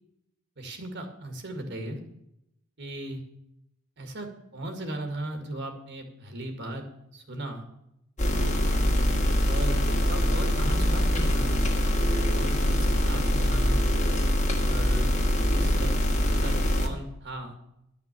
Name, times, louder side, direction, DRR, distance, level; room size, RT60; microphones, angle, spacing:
voice 1, 0.6-2.0 2.8-3.2 4.0-6.9 7.1-7.6 8.7-8.9 9.5-11.6 12.3-13.8 14.6-15.1 15.5-17.6, right 1 dB, 55° right, 6 dB, 2.0 m, -37 dB
sound 1, 8.2-16.9, equal, 35° left, 1.8 m, -24 dB
11.5 x 6.0 x 8.2 m, 0.80 s
head